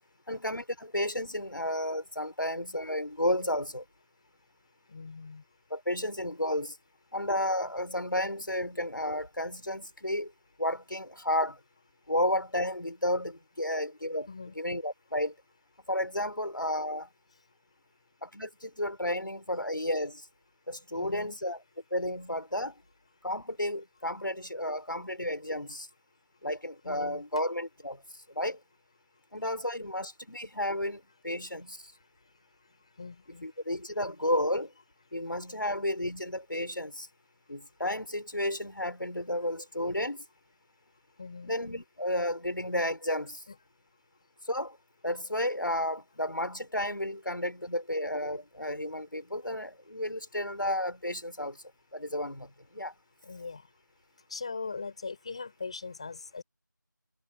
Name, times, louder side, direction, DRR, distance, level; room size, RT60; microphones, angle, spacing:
voice 1, 0.3-3.8 5.7-6.8 7.1-10.3 10.6-11.6 12.1-14.3 14.6-15.3 15.9-17.1 18.2-20.3 20.7-21.6 21.9-22.8 23.2-25.9 26.4-28.0 28.4-28.6 29.3-31.8 33.4-34.7 35.1-37.1 37.5-40.2 41.4-43.4 44.5-44.8 45.0-51.6 51.9-52.9, left 1 dB, 75° left, 5.8 m, -32 dB
voice 2, 4.9-5.4 14.3-14.6 20.9-21.4 26.8-27.2 33.0-33.5 41.2-41.6 43.5-43.6 53.2-53.6 54.3-56.4, left 4 dB, 15° left, 5.7 m, -40 dB
figure-of-eight pair, 175°, 11 cm